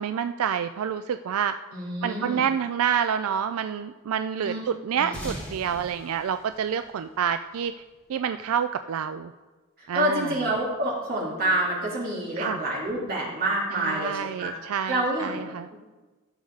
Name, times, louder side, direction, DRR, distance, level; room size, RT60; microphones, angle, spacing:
voice 1, 0.0-1.6 2.0-7.7 8.1-9.3 9.9-10.4 12.4-12.6 13.7-15.7, right 8 dB, 80° right, 10 dB, 0.4 m, -28 dB
voice 2, 1.7-2.4 4.4-4.6 4.9-5.3 9.8-14.5 14.9-15.8, right 1 dB, 45° right, -5 dB, 3.5 m, -28 dB
sound 1, 5.1-7.9, equal, 5° left, 2.7 m, -41 dB
16.0 x 6.7 x 4.0 m, 1.2 s
head